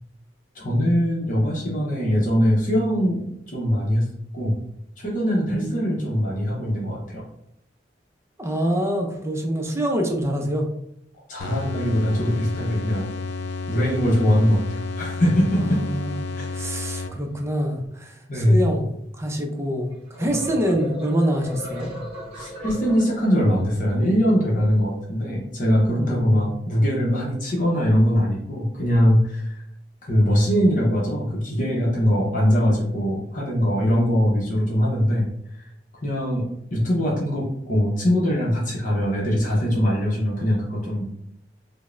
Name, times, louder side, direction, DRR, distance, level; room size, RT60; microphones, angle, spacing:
voice 1, 0.5-4.6 5.0-7.2 11.3-13.1 13.7-15.8 16.4-16.5 18.3-18.7 22.4-29.6 30.1-35.3 36.0-41.1, equal, 45° left, -4 dB, 0.8 m, -22 dB
voice 2, 5.5-6.1 8.4-10.7 15.5-19.9 20.2-21.9 26.0-26.4, equal, 15° right, 2 dB, 0.5 m, -26 dB
sound 1, 11.4-17.5, left 3 dB, 75° left, 0.4 m, -31 dB
sound 2, 19.9-23.8, equal, 35° right, 0.9 m, -35 dB
5.0 x 2.1 x 2.5 m, 0.75 s
head